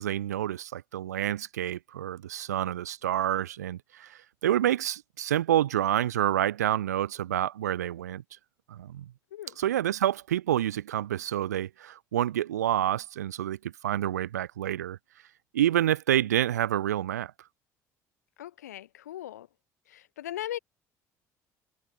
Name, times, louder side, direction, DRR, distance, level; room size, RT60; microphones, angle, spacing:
voice 1, 0.0-8.2 8.7-9.1 9.6-15.0 15.5-17.3, right 12 dB, 80° right, 0.7 m, -28 dB
voice 2, 18.4-19.5 19.9-20.6, left 12 dB, 80° left, 1.0 m, -38 dB
figure-of-eight pair, 55°, 9 cm